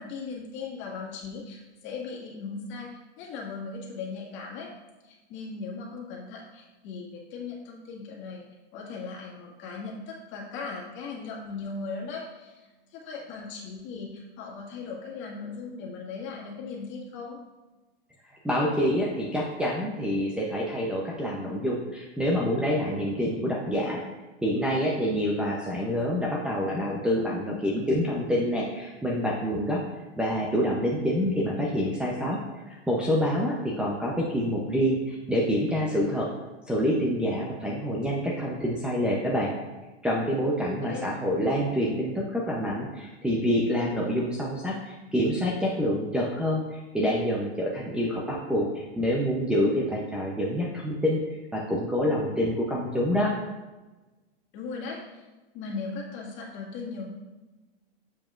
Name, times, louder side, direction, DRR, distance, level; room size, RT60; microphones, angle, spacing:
voice 1, 0.0-4.7 5.0-8.4 8.7-17.4 40.8-41.0 54.5-55.2 55.5-57.1, left 4 dB, 40° left, -2 dB, 1.8 m, -38 dB
voice 2, 18.4-24.0 24.4-29.8 30.2-32.4 32.7-36.3 36.7-39.6 40.0-53.3, equal, 5° right, -5 dB, 0.6 m, -27 dB
7.3 x 7.2 x 2.5 m, 1.2 s
hypercardioid pair, 130°, 30 cm